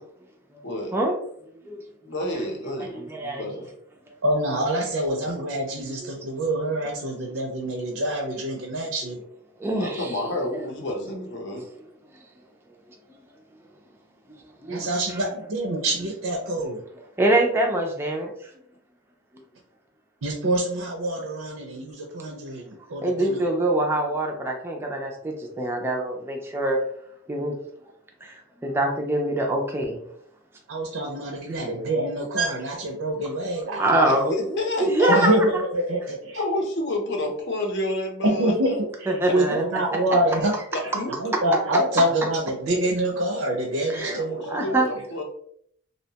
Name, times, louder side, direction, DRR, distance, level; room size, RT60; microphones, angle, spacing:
voice 1, 2.1-3.7 9.8-11.7 34.1-35.4 36.3-38.7 39.2-39.6 40.7-41.1 43.9-45.2, left 1 dB, 55° left, 1 dB, 0.6 m, -29 dB
voice 2, 2.8-3.7 6.0-6.1 9.6-10.2 11.5-11.6 13.1-13.2 14.6-14.9 17.2-18.5 23.0-26.8 27.3-27.5 28.2-30.1 33.8-35.3 39.1-39.6 43.9-44.2 44.5-44.9, right 1 dB, 10° right, 0 dB, 0.3 m, -24 dB
voice 3, 4.2-9.2 14.7-16.8 20.2-23.4 30.7-34.1 35.1-36.4 38.2-40.5 41.2-44.8, right 1 dB, 70° right, -1 dB, 0.5 m, -26 dB
2.7 x 2.1 x 2.7 m, 0.67 s
head